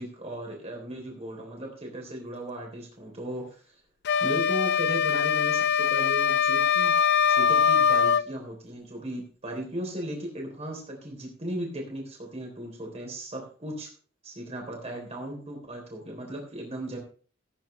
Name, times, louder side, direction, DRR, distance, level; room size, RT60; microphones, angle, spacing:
voice 1, 0.0-3.8 4.2-7.0 7.3-13.9 14.2-17.0, right 1 dB, 30° right, 0 dB, 3.6 m, -36 dB
sound 1, 4.1-8.3, left 7 dB, 55° left, 0.5 m, -22 dB
17.5 x 9.1 x 3.3 m, 0.41 s
head